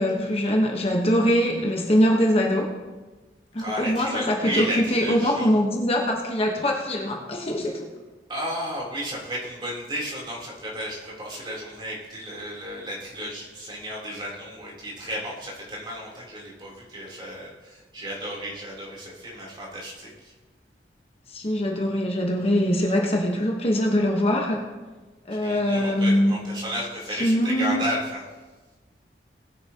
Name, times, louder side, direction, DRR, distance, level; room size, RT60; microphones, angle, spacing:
voice 1, 0.0-2.7 3.5-7.9 21.3-24.7 25.3-26.3 27.1-27.8, equal, 35° left, 0 dB, 1.1 m, -23 dB
voice 2, 3.6-5.5 8.3-20.3 25.3-28.2, equal, 25° right, -5 dB, 3.4 m, -33 dB
19.5 x 9.8 x 2.9 m, 1.3 s
head